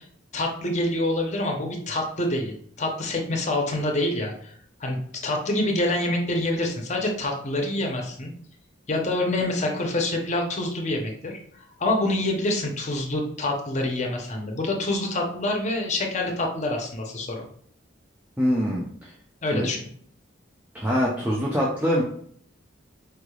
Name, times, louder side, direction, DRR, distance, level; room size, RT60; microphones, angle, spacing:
voice 1, 0.3-4.5 4.8-5.0 5.2-8.3 8.9-17.5 19.4-19.8, left 1 dB, 35° left, 2 dB, 0.7 m, -26 dB
voice 2, 18.4-19.1 19.5-19.7 20.7-22.0, equal, 10° right, -5 dB, 0.5 m, -24 dB
4.8 x 3.2 x 2.3 m, 0.63 s
head